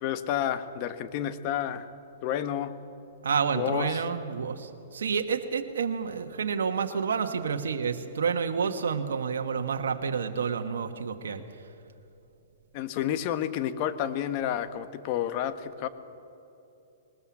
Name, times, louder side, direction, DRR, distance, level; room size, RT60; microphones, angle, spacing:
voice 1, 0.0-1.9 2.2-2.7 3.5-4.0 12.7-15.9, left 10 dB, 45° left, 11 dB, 1.2 m, -30 dB
voice 2, 3.2-11.4, right 6 dB, 75° right, 5 dB, 1.3 m, -29 dB
20.0 x 20.0 x 7.3 m, 2.8 s
hypercardioid pair, 125°, 0 cm